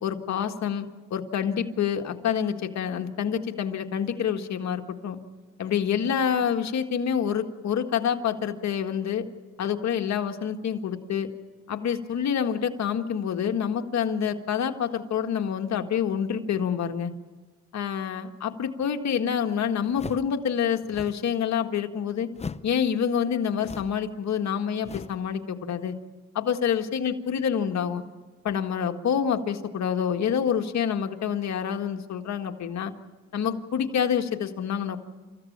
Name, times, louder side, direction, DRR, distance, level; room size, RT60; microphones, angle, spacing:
voice 1, 0.0-5.2 5.6-9.3 9.6-11.3 11.7-17.1 17.7-22.3 22.6-25.9 26.4-28.0 28.4-32.9 33.3-35.0, left 8 dB, 65° left, 6 dB, 1.7 m, -27 dB
sound 1, 19.9-20.4 20.8-21.3 22.3-22.8 23.6-24.1 24.8-25.3, left 4 dB, 20° left, 0.7 m, -38 dB
29.5 x 15.0 x 8.7 m, 1.3 s
cardioid pair, 90°, 30 cm